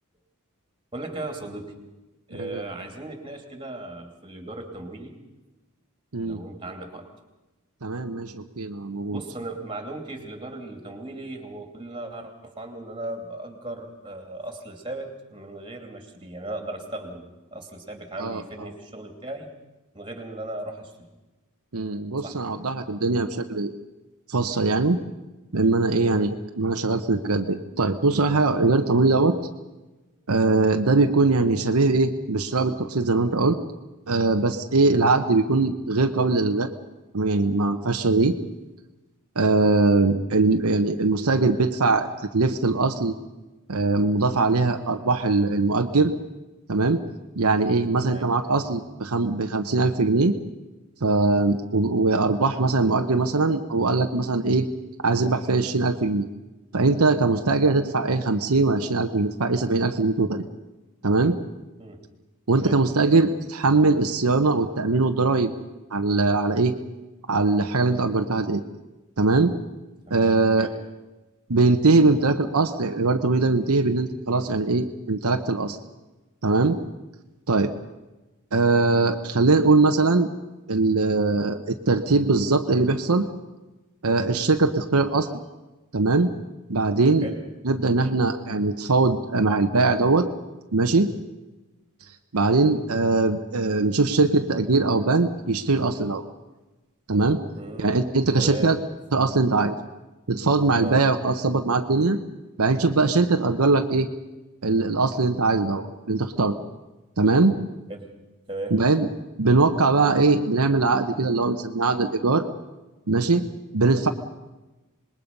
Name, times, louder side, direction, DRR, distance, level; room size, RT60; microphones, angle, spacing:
voice 1, 0.9-1.7 2.3-5.2 6.2-7.1 9.1-19.5 19.9-21.1 22.2-22.7 25.9-26.3 30.2-30.3 34.9-35.2 48.0-48.3 61.8-62.0 62.5-62.8 70.1-70.8 87.2-87.4 97.5-98.0 98.3-98.8 100.8-101.0 107.9-108.1 108.5-108.8, right 2 dB, 20° right, 4 dB, 2.8 m, -37 dB
voice 2, 7.8-9.2 18.2-18.4 21.7-23.7 24.3-25.0 25.5-29.3 30.3-33.6 34.1-36.7 37.1-38.3 39.4-42.1 42.3-43.1 43.7-46.1 46.7-47.0 47.4-50.3 51.0-54.7 55.0-56.2 56.7-60.5 61.0-61.4 62.5-65.5 65.9-66.8 67.3-68.6 69.2-69.5 70.1-70.7 71.5-75.8 76.4-76.8 77.5-77.7 78.5-80.3 80.7-83.3 84.0-85.3 85.9-86.3 86.7-87.3 87.6-90.3 90.7-91.1 92.3-96.2 97.1-97.4 97.8-98.8 99.1-99.8 100.3-102.2 102.6-104.1 104.6-106.6 107.2-107.5 108.7-109.1 109.4-112.4 113.1-113.4 113.7-114.1, right 3 dB, 75° right, 5 dB, 1.0 m, -21 dB
26.5 x 20.5 x 5.4 m, 1.1 s
head